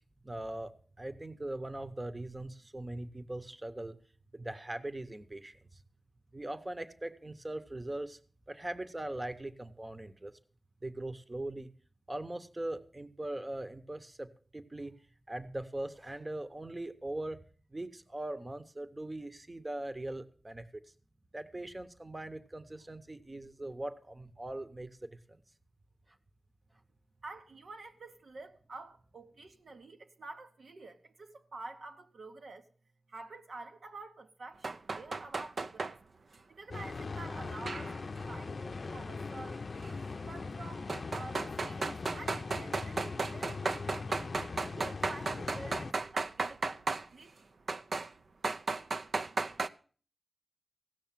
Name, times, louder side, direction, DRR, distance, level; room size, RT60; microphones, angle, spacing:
voice 1, 0.2-0.7 1.0-4.0 4.3-5.6 6.3-8.2 8.5-10.3 10.8-11.7 12.1-14.3 14.5-15.0 15.3-17.4 17.7-20.7 21.3-25.4, right 1 dB, 25° right, 0.9 m, -40 dB
voice 2, 27.2-32.7 33.1-36.0 36.5-39.6 40.2-44.4 44.7-47.5, right 3 dB, 85° right, 1.2 m, -49 dB
sound 1, 34.6-35.9 37.7-38.2 39.8-39.9 40.9-47.1 47.7-48.1 48.4-49.7, right 3 dB, 70° right, 0.5 m, -34 dB
sound 2, 36.7-45.9, left 4 dB, 60° left, 0.5 m, -40 dB
16.5 x 6.5 x 7.4 m
wide cardioid pair, 80°, 0 cm